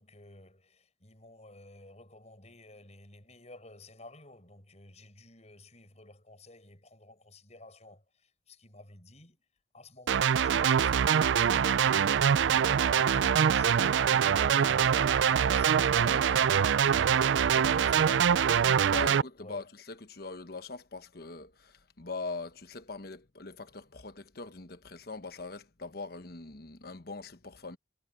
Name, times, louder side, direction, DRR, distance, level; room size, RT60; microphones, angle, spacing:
voice 1, 0.0-9.4 9.7-16.5 17.6-18.5 19.0-19.7, left 2 dB, 40° left, 7.1 m, -53 dB
sound 1, 10.1-19.2, right 8 dB, 85° right, 0.4 m, -24 dB
voice 2, 16.1-16.4 17.5-18.2 18.8-27.8, left 3 dB, 55° left, 1.2 m, -42 dB
head